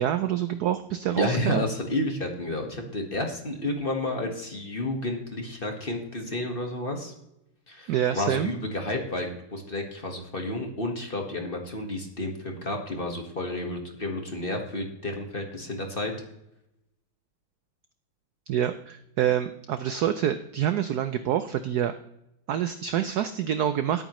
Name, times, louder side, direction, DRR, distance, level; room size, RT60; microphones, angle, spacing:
voice 1, 0.0-1.6 7.9-8.5 18.5-21.9 22.5-24.0, right 10 dB, 80° right, 11 dB, 0.8 m, -26 dB
voice 2, 1.1-7.1 7.7-16.1, left 1 dB, 30° left, 3 dB, 1.5 m, -31 dB
17.5 x 8.9 x 3.1 m, 0.83 s
omnidirectional pair, 2.3 m